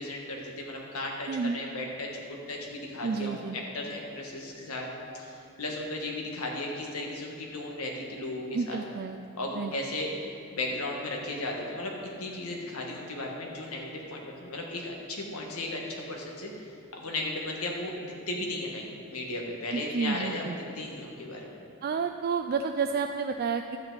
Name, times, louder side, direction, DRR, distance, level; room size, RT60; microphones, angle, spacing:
voice 1, 0.0-4.9 5.1-8.8 9.4-10.1 10.5-11.9 12.2-21.6, left 2 dB, 80° left, -1 dB, 1.5 m, -35 dB
voice 2, 1.3-1.6 3.0-3.6 8.5-9.2 9.6-9.7 19.7-20.6 21.8-23.8, right 5 dB, 45° right, 6 dB, 0.3 m, -30 dB
12.0 x 8.7 x 4.0 m, 2.6 s
head